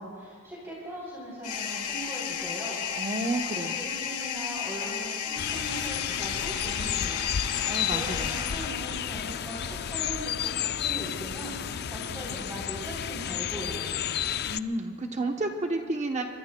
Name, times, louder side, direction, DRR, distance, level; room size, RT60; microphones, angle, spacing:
voice 1, 0.0-2.8 3.3-3.5 3.8-14.0, equal, 10° right, -6 dB, 3.5 m, -40 dB
sound 1, 1.4-9.2, left 8 dB, 90° left, 1.2 m, -34 dB
voice 2, 2.9-3.8 7.7-8.5 14.5-16.2, right 2 dB, 30° right, 3 dB, 0.9 m, -31 dB
sound 2, 5.4-14.6, left 9 dB, 45° left, 0.4 m, -32 dB
25.5 x 23.5 x 2.2 m, 2.3 s
head